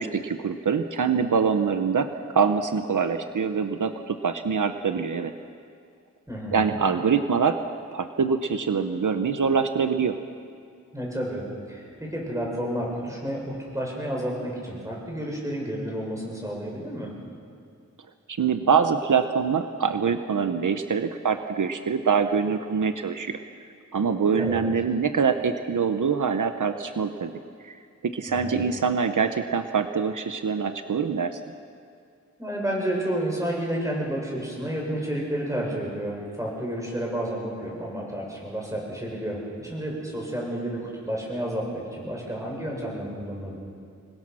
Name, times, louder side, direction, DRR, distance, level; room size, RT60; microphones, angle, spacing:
voice 1, 0.0-2.1 2.3-5.3 6.5-7.6 7.9-10.2 18.3-23.4 23.9-27.3 27.6-31.4, right 6 dB, 80° right, 8 dB, 1.0 m, -24 dB
voice 2, 6.3-6.8 10.9-17.1 24.3-24.7 28.3-28.6 32.4-43.6, right 1 dB, 10° right, -3 dB, 7.3 m, -31 dB
27.0 x 21.5 x 6.3 m, 2.4 s
wide cardioid pair, 90°, 31 cm